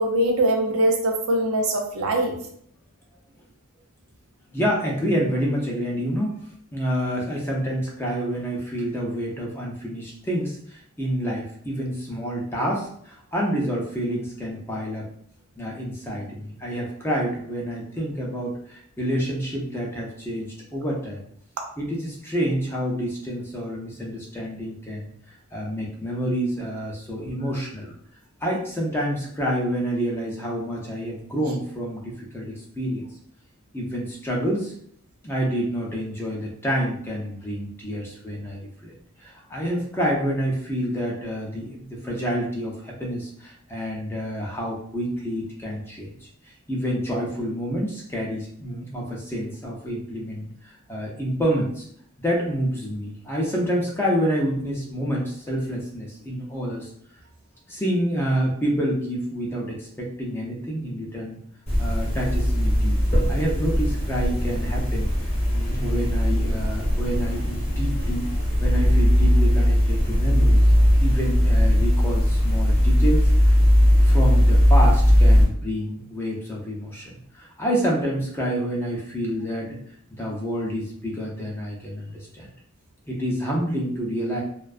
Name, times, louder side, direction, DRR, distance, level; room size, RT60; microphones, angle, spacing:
voice 1, 0.0-2.4, right 1 dB, 80° right, 2 dB, 0.5 m, -22 dB
voice 2, 4.5-6.4 6.7-15.1 15.6-21.3 21.8-27.9 28.4-33.0 33.7-34.7 35.2-38.9 39.2-46.2 46.4-51.8 52.2-56.9 57.7-61.4 61.8-65.1 65.5-70.6 71.0-73.5 74.0-79.8 80.1-82.5 83.1-84.4, equal, 10° left, -3 dB, 0.4 m, -28 dB
sound 1, 61.7-75.4, equal, 30° left, 0.8 m, -19 dB
2.5 x 2.2 x 2.3 m, 0.64 s
head